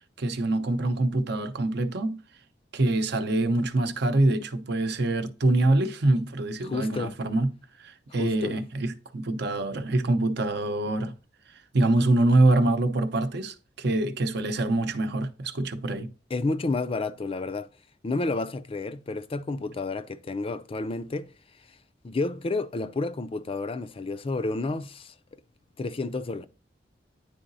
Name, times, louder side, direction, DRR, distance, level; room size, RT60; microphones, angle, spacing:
voice 1, 0.2-2.2 2.7-11.1 11.7-16.1, right 2 dB, 60° right, 0.7 m, -25 dB
voice 2, 6.6-7.2 8.2-8.5 16.3-17.7 18.0-21.3 22.0-25.4 25.8-26.5, left 3 dB, 30° left, 0.4 m, -30 dB
9.9 x 3.9 x 2.6 m
head